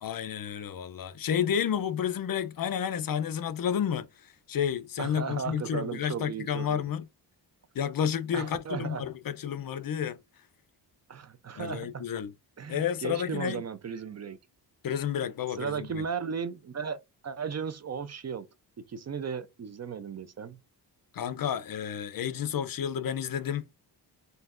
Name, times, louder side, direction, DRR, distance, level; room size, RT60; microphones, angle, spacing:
voice 1, 0.0-7.1 7.8-10.2 11.6-12.3 12.7-13.6 14.8-16.0 21.1-23.6, left 8 dB, 55° left, 0.6 m, -31 dB
voice 2, 5.0-6.8 8.3-9.0 11.1-12.0 12.6-14.4 15.6-17.0 17.2-18.5 18.8-20.6, right 6 dB, 40° right, 0.5 m, -35 dB
5.6 x 2.7 x 2.4 m
wide cardioid pair, 110°, 41 cm